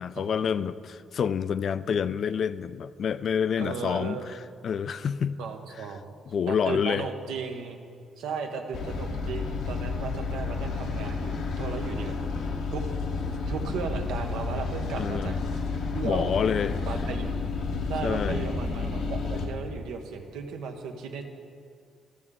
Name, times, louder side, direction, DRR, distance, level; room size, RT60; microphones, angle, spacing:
voice 1, 0.0-4.2 4.6-5.4 6.3-7.1 15.0-15.4 16.0-16.7 18.0-18.4, left 7 dB, 55° left, 14 dB, 0.3 m, -28 dB
voice 2, 3.6-4.3 5.4-6.1 6.5-7.8 8.2-12.1 12.7-12.8 13.5-15.3 15.9-16.3 16.9-17.3 17.9-21.2, right 5 dB, 85° right, 4 dB, 0.8 m, -35 dB
sound 1, 8.7-19.5, left 4 dB, 85° left, 1.1 m, -31 dB
14.0 x 6.7 x 3.7 m, 2.3 s
cardioid pair, 90°, 0 cm